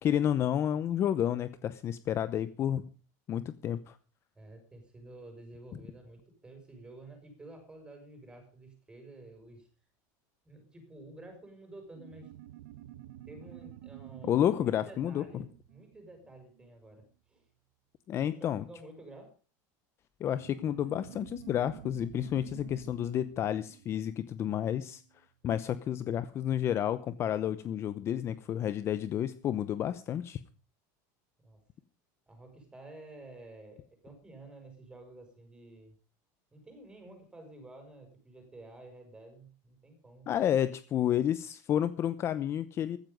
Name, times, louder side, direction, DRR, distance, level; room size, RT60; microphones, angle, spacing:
voice 1, 0.0-2.9 3.3-4.0 14.2-15.2 18.1-18.6 20.2-25.0 25.4-30.4 40.3-43.0, left 10 dB, 30° left, 14 dB, 0.8 m, -30 dB
voice 2, 4.3-9.7 10.4-12.3 13.3-17.5 18.2-19.3 31.4-31.6 32.3-35.9 36.5-40.3 42.5-42.6, right 2 dB, 10° right, 5 dB, 6.2 m, -51 dB
sound 1, 11.9-16.9 20.2-25.1, right 14 dB, 85° right, 1.2 m, -50 dB
15.5 x 14.0 x 5.3 m, 0.37 s
supercardioid pair, 165°, 9 cm